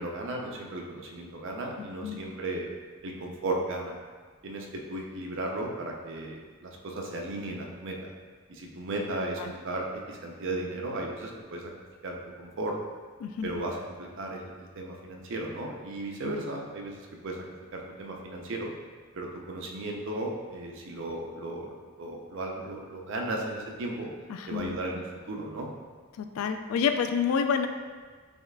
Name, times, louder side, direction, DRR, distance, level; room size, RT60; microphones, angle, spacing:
voice 1, 0.0-2.7 3.0-4.0 4.4-8.1 8.5-11.7 12.0-12.8 13.4-17.0 17.2-17.5 17.7-18.7 19.1-21.7 22.0-24.1 24.5-25.7, right 2 dB, 65° right, 0 dB, 0.5 m, -35 dB
voice 2, 1.8-2.2 9.4-9.5 13.2-13.5 16.2-16.3 24.3-24.8 26.2-27.7, left 6 dB, 80° left, 8 dB, 0.3 m, -29 dB
6.2 x 2.4 x 2.2 m, 1.5 s
head